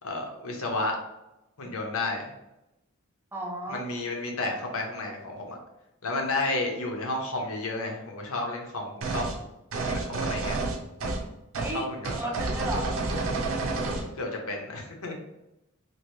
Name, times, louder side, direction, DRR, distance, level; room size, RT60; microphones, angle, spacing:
voice 1, 0.0-1.0 1.6-2.3 3.7-5.6 6.0-9.3 9.8-10.6 11.7-12.3 14.2-15.1, left 2 dB, 75° left, 1 dB, 0.8 m, -32 dB
voice 2, 3.3-3.8 11.5-11.9 12.2-13.1, right 1 dB, 10° right, 0 dB, 0.4 m, -34 dB
sound 1, 9.0-9.4 9.7-11.3 11.5-11.7 12.0-14.1, right 3 dB, 65° right, 0.5 m, -29 dB
3.0 x 2.5 x 3.0 m, 0.91 s
head